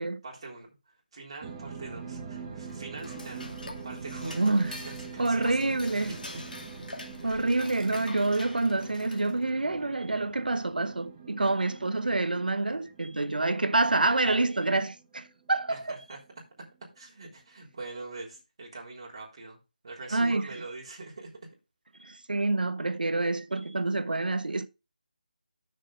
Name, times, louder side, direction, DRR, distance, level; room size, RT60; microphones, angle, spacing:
voice 1, 0.0-3.5 3.8-5.6 6.1-6.4 7.2-7.4 15.7-16.2 16.6-16.7 16.9-19.6 19.8-21.5, right 3 dB, 35° right, 3.4 m, -43 dB
sound 1, 1.4-16.0 16.4-16.5, right 5 dB, 20° right, 1.1 m, -44 dB
Dishes pots and pans / Cutlery silverware, 2.7-9.5, left 2 dB, 80° left, 2.4 m, -44 dB
voice 2, 4.3-4.7 5.2-6.1 7.2-16.0 20.1-20.5 22.0-24.7, right 2 dB, 85° right, 1.0 m, -27 dB
6.6 x 5.1 x 6.4 m
figure-of-eight pair, 170°, 5 cm